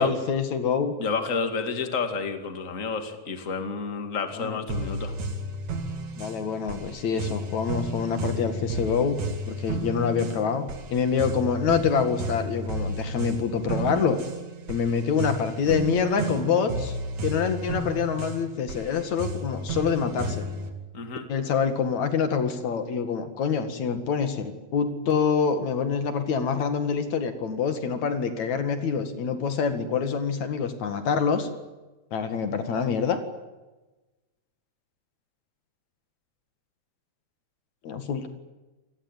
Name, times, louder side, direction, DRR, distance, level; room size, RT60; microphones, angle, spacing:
voice 1, 0.0-1.0 4.4-4.6 6.2-14.2 14.7-17.0 17.2-20.4 21.3-31.5 32.1-33.2 37.8-38.3, left 6 dB, 70° left, 8 dB, 3.3 m, -26 dB
voice 2, 1.0-5.1 20.9-21.2, left 4 dB, 30° left, 7 dB, 2.5 m, -30 dB
sound 1, 4.7-20.7, right 2 dB, 75° right, 3.9 m, -33 dB
28.0 x 19.5 x 9.2 m, 1.1 s
omnidirectional pair, 3.3 m